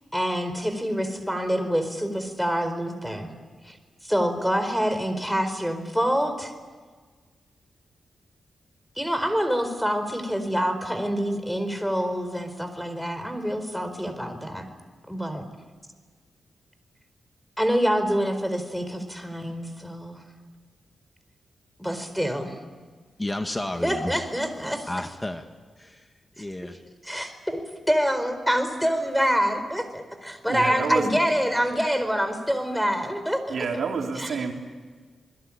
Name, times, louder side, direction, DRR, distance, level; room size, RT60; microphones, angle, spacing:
voice 1, 0.1-3.3 3.7-3.8 4.0-6.5 9.0-14.7 15.1-15.4 17.6-20.2 21.8-22.6 23.8-24.9 26.6-26.7 27.0-33.6 34.2-34.3, equal, ahead, 4.4 m, -26 dB
voice 2, 23.2-24.2 24.9-25.5 25.8-26.1 26.4-26.8, left 1 dB, 15° left, 1.7 m, -31 dB
voice 3, 30.5-31.1 33.5-34.5, right 5 dB, 75° right, 4.0 m, -28 dB
28.0 x 21.5 x 8.8 m
cardioid pair, 80°, 0 cm